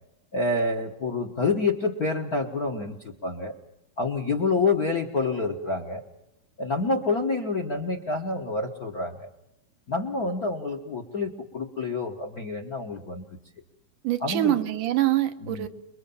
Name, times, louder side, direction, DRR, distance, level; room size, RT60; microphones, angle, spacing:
voice 1, 0.3-3.6 4.0-6.0 6.6-9.3 9.9-13.2 14.2-14.6 15.4-15.7, left 3 dB, 50° left, 7 dB, 1.1 m, -28 dB
voice 2, 14.0-15.7, right 14 dB, 85° right, 7 dB, 2.8 m, -24 dB
27.0 x 22.5 x 7.1 m, 0.86 s
omnidirectional pair, 3.6 m